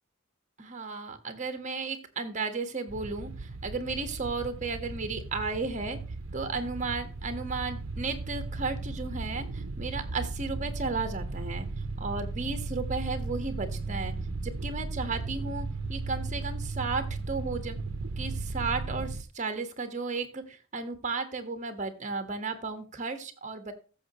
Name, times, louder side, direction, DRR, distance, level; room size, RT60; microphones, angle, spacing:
voice 1, 0.6-6.0 6.3-14.1 14.4-17.8 18.2-23.7, right 4 dB, 35° right, 8 dB, 1.5 m, -34 dB
sound 1, 2.9-19.2, right 3 dB, 75° right, 0.8 m, -36 dB
15.0 x 6.9 x 3.1 m, 0.35 s
head